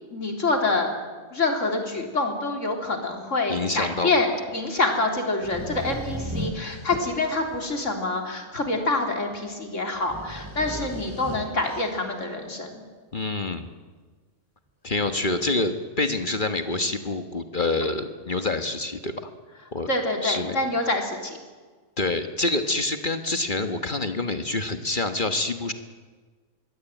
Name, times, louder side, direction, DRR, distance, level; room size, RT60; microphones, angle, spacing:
voice 1, 0.1-0.9 1.3-4.3 4.5-12.8 19.9-21.4, left 2 dB, 65° left, 3 dB, 3.9 m, -26 dB
voice 2, 3.5-4.1 13.1-13.7 14.8-19.3 19.7-19.9 20.2-20.6 22.0-25.7, left 2 dB, 40° left, 8 dB, 1.5 m, -27 dB
sound 1, 5.4-7.9 8.6-8.7 9.3-9.4 9.8-12.3 15.0-15.1, right 1 dB, 15° right, 6.3 m, -36 dB
25.0 x 21.0 x 9.2 m, 1.5 s
omnidirectional pair, 1.4 m